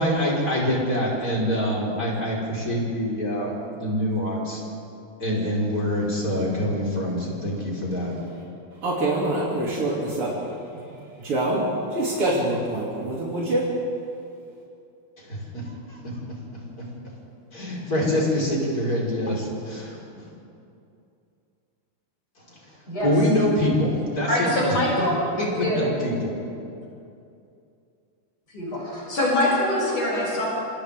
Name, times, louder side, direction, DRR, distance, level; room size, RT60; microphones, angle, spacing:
voice 1, 0.0-3.5 3.7-4.6 5.2-8.1 15.2-15.6 15.9-16.0 17.5-20.0 23.0-24.7 25.4-26.3, equal, 40° left, -4 dB, 5.5 m, -25 dB
voice 2, 8.0-8.4 8.8-10.4 10.7-10.8 11.2-13.7, right 1 dB, 85° right, -6 dB, 4.0 m, -25 dB
voice 3, 24.3-25.8 28.5-30.5, left 1 dB, 70° left, -6 dB, 8.2 m, -24 dB
27.5 x 26.5 x 3.7 m, 2.6 s
omnidirectional pair, 2.4 m